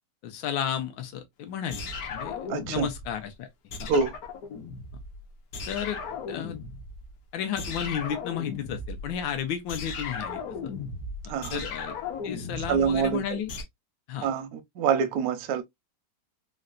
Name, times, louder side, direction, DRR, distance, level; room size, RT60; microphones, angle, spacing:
voice 1, 0.2-2.4 2.7-3.5 3.8-3.9 5.7-6.0 6.3-6.6 7.3-10.4 11.5-12.0 12.2-13.5 14.1-14.3, left 9 dB, 80° left, 1.4 m, -32 dB
sound 1, 1.7-3.2 3.7-5.2 5.5-7.1 7.6-13.6, left 4 dB, 60° left, 1.0 m, -36 dB
voice 2, 2.5-2.9 3.9-4.1 11.3-11.6 12.7-13.4 14.2-15.6, right 6 dB, 70° right, 0.8 m, -26 dB
3.8 x 2.1 x 2.3 m
omnidirectional pair, 2.1 m